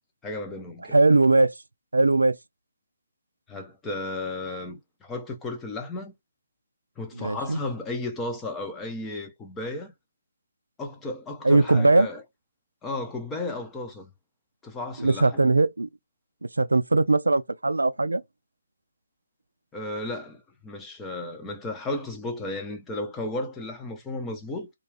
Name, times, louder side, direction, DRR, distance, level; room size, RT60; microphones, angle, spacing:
voice 1, 0.2-1.0 3.5-6.1 7.0-9.9 10.8-12.2 12.8-14.1 14.6-15.4 19.7-24.7, left 2 dB, 10° left, 0.7 m, -34 dB
voice 2, 0.9-1.5 1.9-2.4 7.2-7.6 11.4-12.1 15.0-15.9 16.6-18.2, right 2 dB, 90° right, 0.3 m, -20 dB
2.4 x 2.3 x 3.2 m
figure-of-eight pair, 145°, 0 cm